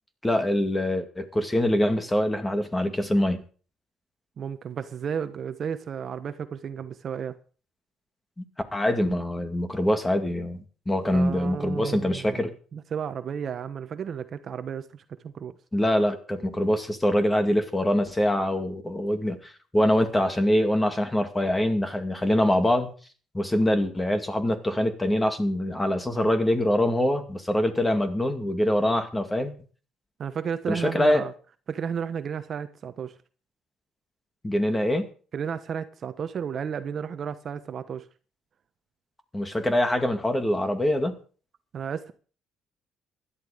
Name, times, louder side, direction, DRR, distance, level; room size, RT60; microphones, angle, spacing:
voice 1, 0.2-3.4 8.4-8.5 8.7-12.5 15.7-22.9 23.3-29.6 30.7-31.2 34.4-35.1 39.3-41.2, left 1 dB, 10° left, 2.3 m, -24 dB
voice 2, 4.4-7.4 11.1-15.5 30.2-31.3 31.7-33.2 35.3-38.1 41.7-42.1, right 7 dB, 45° right, 1.1 m, -33 dB
16.0 x 11.5 x 5.1 m
cardioid pair, 115°, 0 cm